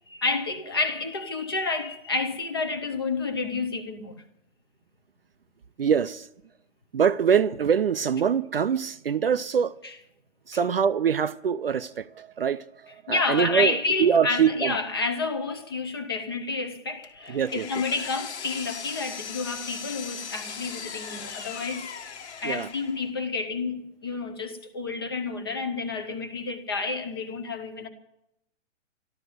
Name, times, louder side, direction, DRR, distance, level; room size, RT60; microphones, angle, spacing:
voice 1, 0.0-4.2 13.1-22.1 22.4-27.9, left 3 dB, 20° left, 0.7 m, -30 dB
voice 2, 5.8-6.3 6.9-9.8 10.5-14.8 17.3-17.7 22.4-22.7, right 7 dB, 50° right, 0.4 m, -24 dB
Power tool, 17.0-23.1, left 7 dB, 60° left, 1.5 m, -38 dB
13.5 x 12.0 x 7.8 m
hypercardioid pair, 180°, 38 cm